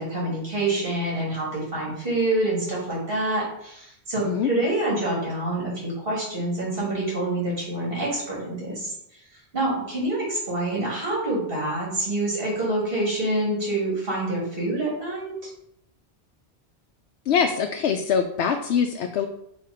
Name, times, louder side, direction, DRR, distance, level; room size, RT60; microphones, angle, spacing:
voice 1, 0.0-8.9 9.5-15.3, right 1 dB, 55° right, -6 dB, 2.9 m, -26 dB
voice 2, 17.3-19.3, left 7 dB, 75° left, 4 dB, 0.8 m, -23 dB
5.7 x 3.5 x 4.9 m, 0.75 s
omnidirectional pair, 1.1 m